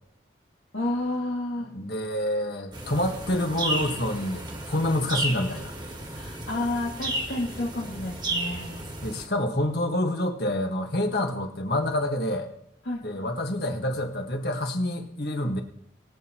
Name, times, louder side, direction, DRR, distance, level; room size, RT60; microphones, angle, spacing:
voice 1, 0.7-1.7 6.1-8.8 12.9-13.3, left 2 dB, 85° left, -6 dB, 2.3 m, -30 dB
voice 2, 1.7-5.7 9.0-12.5 13.0-15.6, left 1 dB, 60° left, 3 dB, 1.7 m, -27 dB
sound 1, 2.7-9.3, right 2 dB, 25° right, 1.6 m, -33 dB
22.5 x 8.9 x 3.1 m, 0.79 s
head